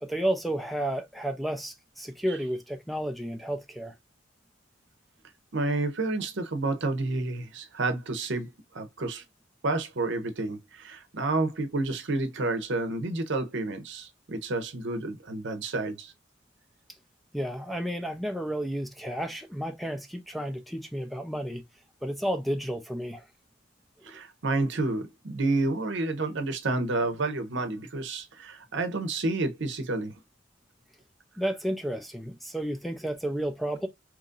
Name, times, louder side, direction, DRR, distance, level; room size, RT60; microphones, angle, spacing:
voice 1, 0.0-3.9 17.3-21.6 22.0-23.3 24.0-24.1 31.4-33.9, right 1 dB, ahead, 0.4 m, -32 dB
voice 2, 5.5-9.2 9.6-16.1 24.0-30.1, right 2 dB, 65° right, 0.8 m, -30 dB
3.0 x 2.5 x 3.8 m
head